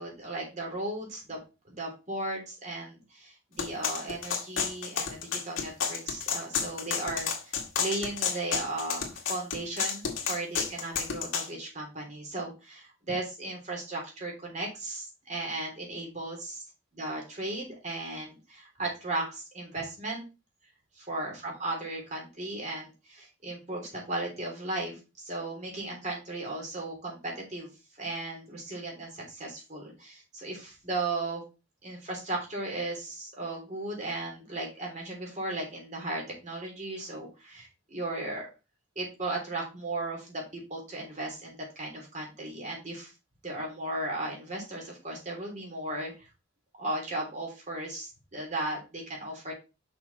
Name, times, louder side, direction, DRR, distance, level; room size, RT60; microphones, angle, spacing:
voice 1, 0.0-1.4 1.7-16.6 16.9-20.2 21.0-27.7 28.0-31.4 31.8-38.5 38.9-43.1 43.4-46.3 46.8-49.5, right 2 dB, 35° right, -1 dB, 3.3 m, -36 dB
sound 1, 3.6-11.5, left 6 dB, 70° left, 1.9 m, -31 dB
6.3 x 6.1 x 4.1 m, 0.29 s
head